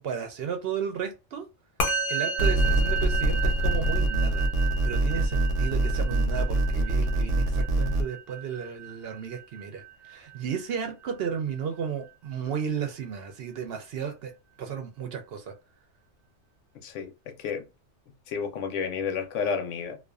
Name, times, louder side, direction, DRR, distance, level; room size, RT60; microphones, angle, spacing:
voice 1, 0.0-1.5 2.1-4.5 4.8-14.3 14.6-15.5, right 7 dB, 65° right, 0.7 m, -34 dB
Musical instrument, 1.8-11.3, right 4 dB, 50° left, 0.8 m, -34 dB
sound 1, 2.4-8.0, right 1 dB, 85° right, 0.9 m, -24 dB
voice 2, 16.8-17.7 18.3-20.0, left 6 dB, 80° left, 0.9 m, -31 dB
2.4 x 2.2 x 2.3 m
omnidirectional pair, 1.3 m